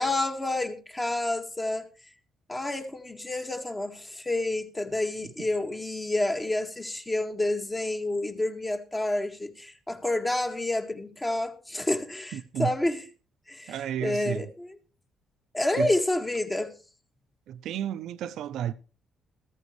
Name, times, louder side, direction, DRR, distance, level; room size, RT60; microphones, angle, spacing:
voice 1, 0.0-1.9 2.5-13.0 13.5-14.8 15.5-16.7, left 2 dB, 20° left, 1.9 m, -29 dB
voice 2, 12.3-12.7 13.7-14.5 15.7-15.9 17.5-18.7, right 10 dB, 80° right, 0.7 m, -32 dB
14.5 x 14.0 x 3.2 m
cardioid pair, 90°, 0 cm